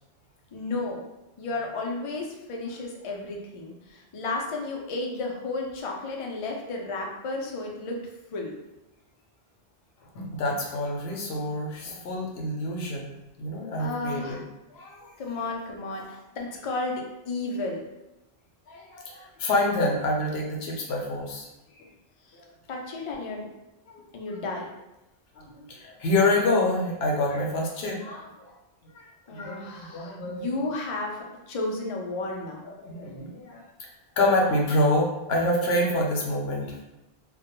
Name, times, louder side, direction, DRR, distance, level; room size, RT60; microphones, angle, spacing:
voice 1, 0.5-1.0 1.4-8.0 8.3-8.5 13.8-14.4 15.2-17.8 22.7-23.5 24.1-24.7 29.3-32.6, left 2 dB, 60° left, 0 dB, 0.3 m, -33 dB
voice 2, 10.1-14.4 14.7-15.1 18.7-21.5 21.8-21.9 23.9-24.0 25.3-28.5 28.8-30.6 32.2-32.4 32.6-33.9 34.2-36.8, left 1 dB, 80° left, -1 dB, 0.8 m, -27 dB
2.2 x 2.1 x 2.9 m, 0.97 s
omnidirectional pair, 1.1 m